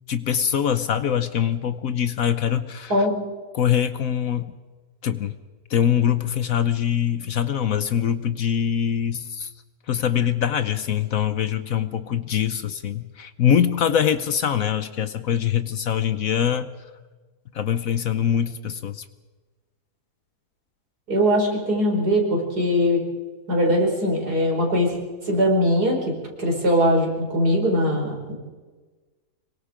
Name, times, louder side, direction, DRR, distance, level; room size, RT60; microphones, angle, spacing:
voice 1, 0.1-3.1 3.5-4.5 5.0-5.3 5.7-9.5 9.9-16.7 17.5-19.0, left 9 dB, 60° left, 12 dB, 1.1 m, -23 dB
voice 2, 2.9-3.2 21.1-23.0 23.5-24.9 25.2-28.3, equal, 70° right, 0 dB, 5.3 m, -21 dB
25.5 x 23.0 x 5.0 m, 1.3 s
omnidirectional pair, 1.8 m